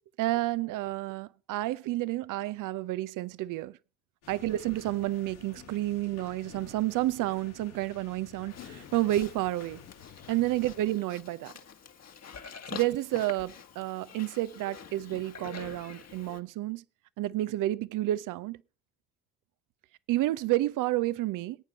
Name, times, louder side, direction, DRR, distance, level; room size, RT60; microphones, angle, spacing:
voice 1, 0.2-3.7 4.3-9.8 10.3-11.5 12.7-16.8 17.2-18.6 20.1-21.6, right 16 dB, 60° right, 0.7 m, -30 dB
sound 1, 4.2-10.8, left 8 dB, 80° left, 3.1 m, -51 dB
Livestock farm animals working animals, 8.5-16.4, left 7 dB, 45° left, 1.6 m, -47 dB
20.0 x 8.9 x 4.1 m
hypercardioid pair, 50°, 35 cm